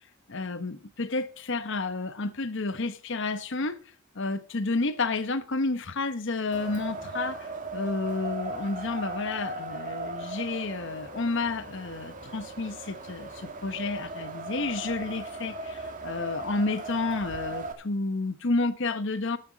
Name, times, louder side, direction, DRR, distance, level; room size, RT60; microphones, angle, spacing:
voice 1, 0.3-3.8 4.1-19.4, left 3 dB, 60° left, 1.0 m, -30 dB
Wind, 6.5-17.7, right 2 dB, 40° right, 2.2 m, -38 dB
13.0 x 9.2 x 5.1 m
head